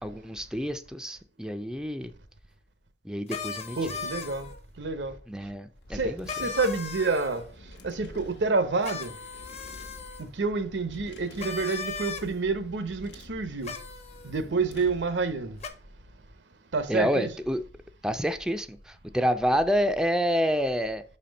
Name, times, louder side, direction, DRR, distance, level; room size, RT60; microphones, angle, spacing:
voice 1, 0.0-2.1 3.0-4.0 5.3-6.3 16.9-17.6 18.0-21.0, equal, 5° right, 0.4 m, -28 dB
sound 1, 3.3-4.6 6.3-7.4 8.8-10.2 11.4-12.2 13.6-14.3 15.6-15.7, left 5 dB, 40° left, 0.8 m, -37 dB
voice 2, 3.8-5.2 5.9-7.5 7.8-9.1 10.2-13.7 14.2-15.6 16.7-17.3, right 3 dB, 85° right, 0.8 m, -28 dB
sound 2, 5.7-15.4, left 1 dB, 70° left, 1.0 m, -49 dB
5.5 x 4.3 x 5.1 m
head